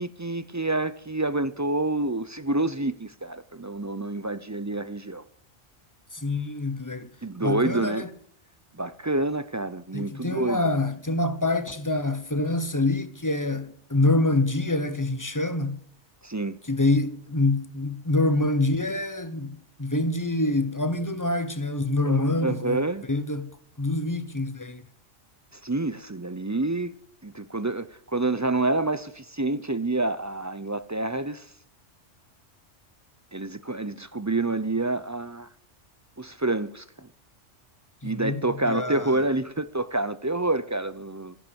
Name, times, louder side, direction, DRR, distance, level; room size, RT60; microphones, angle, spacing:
voice 1, 0.0-5.2 7.2-8.1 8.7-10.6 16.2-16.6 22.0-23.0 25.5-26.9 27.2-31.5 33.3-35.5 36.2-37.1 38.0-41.4, right 2 dB, 25° right, 0.4 m, -28 dB
voice 2, 6.1-7.1 7.4-8.1 9.9-15.8 16.7-22.8 23.1-23.5 23.8-24.8 38.0-39.1, left 2 dB, 15° left, 1.0 m, -26 dB
14.0 x 11.0 x 7.0 m
omnidirectional pair, 1.2 m